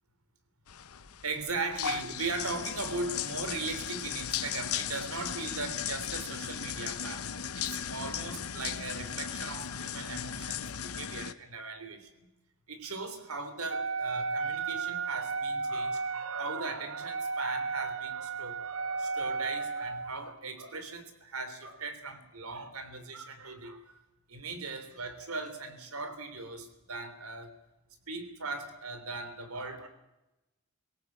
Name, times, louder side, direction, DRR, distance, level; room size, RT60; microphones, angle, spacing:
sound 1, 0.7-11.3, left 8 dB, 85° left, 0.9 m, -37 dB
voice 1, 1.2-12.3 12.7-24.0 24.3-27.6 28.1-29.9, right 3 dB, 90° right, 9 dB, 3.4 m, -39 dB
Wind instrument woodwind instrument, 13.7-20.2, right 4 dB, 65° right, 0.8 m, -34 dB
21.0 x 17.5 x 8.5 m, 0.96 s
head